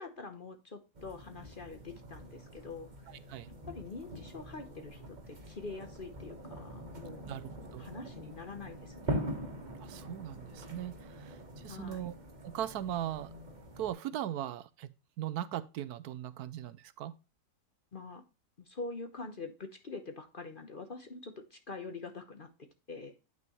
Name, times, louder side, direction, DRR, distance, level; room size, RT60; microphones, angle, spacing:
voice 1, 0.0-3.2 3.7-7.3 7.8-9.2 11.7-12.1 17.9-18.2 18.6-23.1, left 3 dB, 40° left, 0.9 m, -45 dB
sound 1, 0.9-13.9, right 1 dB, 30° right, 1.3 m, -43 dB
voice 2, 7.3-7.9 9.8-12.1 12.4-13.3 13.8-14.9 15.2-17.2, right 11 dB, 75° right, 1.1 m, -39 dB
9.1 x 6.0 x 3.0 m
omnidirectional pair, 1.7 m